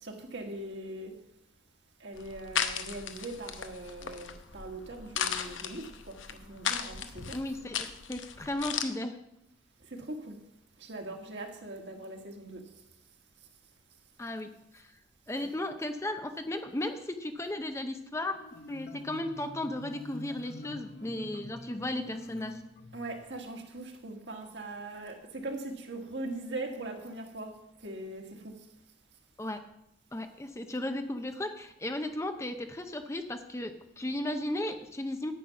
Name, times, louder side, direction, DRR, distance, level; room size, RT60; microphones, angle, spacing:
voice 1, 0.0-1.1 2.0-7.4 10.1-10.3 10.8-12.6 15.3-15.5 22.9-27.5 27.8-28.2, right 2 dB, 60° right, 2 dB, 1.9 m, -41 dB
sound 1, 2.2-8.9, left 8 dB, 75° left, 0.9 m, -36 dB
voice 2, 7.3-9.2 14.2-15.0 15.3-18.4 18.7-22.6 29.4-29.6 30.1-35.3, left 1 dB, 15° left, 7 dB, 0.6 m, -35 dB
Marimba xylophone, 18.2-23.3, equal, 50° left, 1.2 m, -45 dB
10.0 x 8.6 x 5.9 m, 0.82 s
head